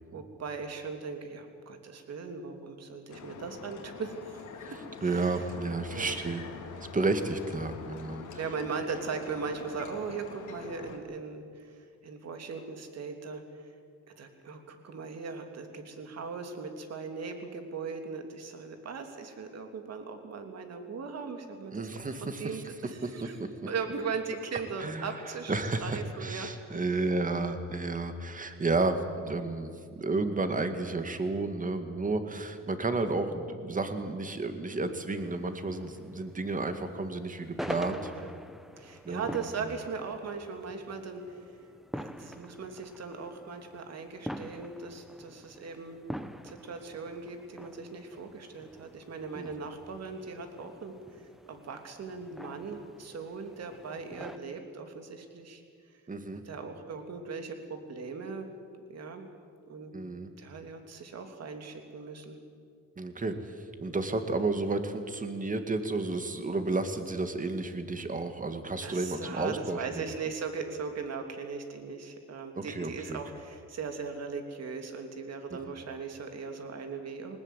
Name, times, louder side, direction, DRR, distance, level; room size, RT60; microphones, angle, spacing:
voice 1, 0.1-5.4 5.9-6.2 8.4-13.7 14.2-21.9 22.2-23.4 23.7-25.5 25.8-26.8 37.8-38.4 38.8-41.4 41.9-46.0 46.4-51.0 51.5-55.6 56.4-58.5 58.9-59.3 59.7-59.9 60.4-62.4 68.8-77.4, right 5 dB, 55° right, 5 dB, 3.1 m, -39 dB
sound 1, 3.1-11.0, left 5 dB, 75° left, 2.9 m, -45 dB
voice 2, 5.0-6.4 6.9-8.3 21.7-22.6 23.0-23.5 24.8-25.2 25.5-38.1 39.0-39.4 49.3-49.5 56.1-56.4 59.9-60.3 63.0-70.1 72.5-73.2 75.5-75.6, right 3 dB, 25° right, 8 dB, 2.3 m, -32 dB
sound 2, 35.2-54.4, equal, ahead, 1.2 m, -45 dB
20.5 x 19.5 x 8.3 m, 2.2 s
cardioid pair, 90°, 30 cm